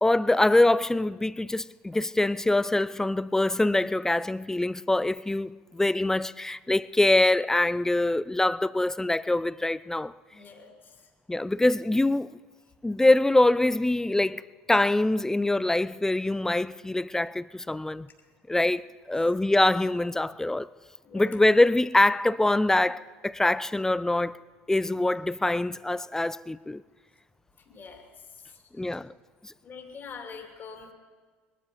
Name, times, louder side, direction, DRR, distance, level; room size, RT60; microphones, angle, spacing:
voice 1, 0.0-10.1 11.3-12.3 12.8-14.4 14.7-18.1 18.5-20.7 21.1-24.4 24.7-26.8 28.8-29.1 29.4-29.5, left 2 dB, 10° left, 0.4 m, -24 dB
voice 2, 10.3-11.0 18.5-18.7 21.0-21.4 27.6-28.6 29.6-30.9, left 5 dB, 35° left, 2.9 m, -45 dB
20.5 x 12.5 x 5.4 m
hypercardioid pair, 75°, 6 cm